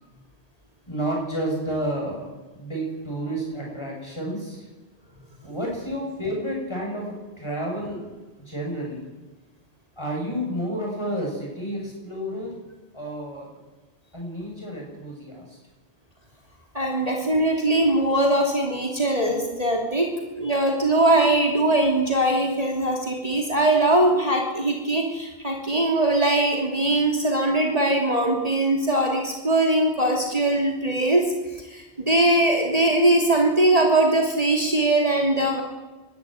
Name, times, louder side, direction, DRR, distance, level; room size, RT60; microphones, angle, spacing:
voice 1, 0.9-4.7 5.4-7.0 7.4-9.0 10.0-12.5 12.9-13.5 14.1-15.6, right 1 dB, 25° left, -2 dB, 7.9 m, -30 dB
voice 2, 16.7-20.1 20.3-31.3 31.5-35.6, right 1 dB, 35° right, 0 dB, 3.1 m, -21 dB
23.5 x 13.5 x 9.6 m, 1.2 s
omnidirectional pair, 1.2 m